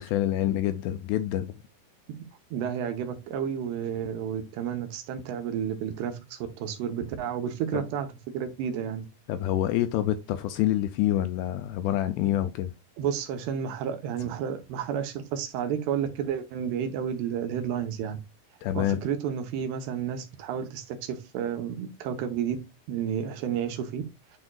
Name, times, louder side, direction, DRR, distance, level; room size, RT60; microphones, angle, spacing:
voice 1, 0.0-1.5 7.7-7.8 9.3-12.7 18.6-19.0, left 12 dB, 85° left, 2.5 m, -27 dB
voice 2, 2.5-8.1 8.3-9.0 13.0-18.2 18.7-22.6 22.9-24.0, right 8 dB, 75° right, 2.8 m, -31 dB
9.8 x 4.3 x 2.3 m
omnidirectional pair, 5.1 m